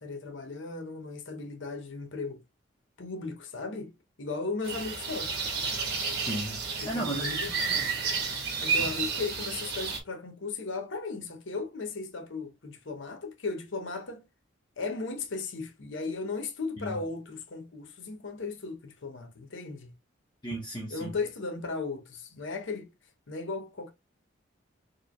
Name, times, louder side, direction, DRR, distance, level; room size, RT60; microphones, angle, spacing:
voice 1, 0.0-2.4 3.0-3.9 4.2-5.3 6.8-7.5 8.6-14.2 14.8-19.9 20.9-22.9 23.3-23.9, left 3 dB, 70° left, 0.7 m, -36 dB
sound 1, 4.6-10.0, right 5 dB, 50° right, 1.2 m, -31 dB
voice 2, 6.3-7.4 7.7-7.9 16.8-17.0 20.4-21.1, right 1 dB, 20° left, 0.8 m, -35 dB
4.5 x 3.1 x 2.3 m
head